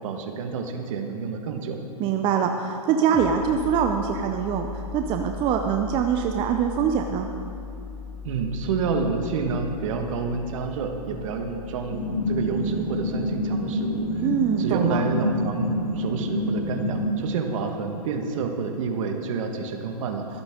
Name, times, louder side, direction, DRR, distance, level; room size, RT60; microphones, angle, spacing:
voice 1, 0.0-1.8 8.2-12.0 12.3-14.3 14.6-20.2, right 5 dB, 50° right, 4 dB, 1.6 m, -28 dB
voice 2, 2.0-7.3 14.2-15.0, right 7 dB, 25° right, 4 dB, 0.6 m, -24 dB
sound 1, 3.1-14.5, left 5 dB, 5° left, 1.0 m, -39 dB
sound 2, 11.9-17.1, left 1 dB, 65° left, 3.1 m, -27 dB
25.0 x 8.9 x 3.8 m, 2.8 s
hypercardioid pair, 130°, 21 cm